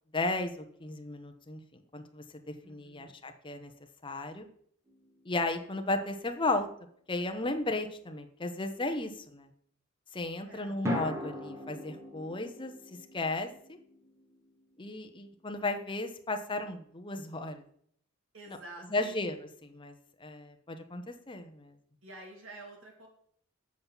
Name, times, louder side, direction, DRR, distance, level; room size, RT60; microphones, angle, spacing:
voice 1, 0.1-3.7 4.0-4.5 5.2-6.7 7.1-9.5 10.1-13.8 14.8-17.6 18.5-18.6 18.9-19.3 19.6-21.7, left 2 dB, 25° left, 6 dB, 0.9 m, -35 dB
voice 2, 2.6-3.1 10.5-10.8 18.3-19.3 22.0-23.1, right 2 dB, 70° right, 1 dB, 2.7 m, -49 dB
sound 1, 4.9-6.0 10.9-15.2, left 1 dB, 15° right, 1.5 m, -40 dB
7.7 x 5.5 x 7.3 m, 0.65 s
head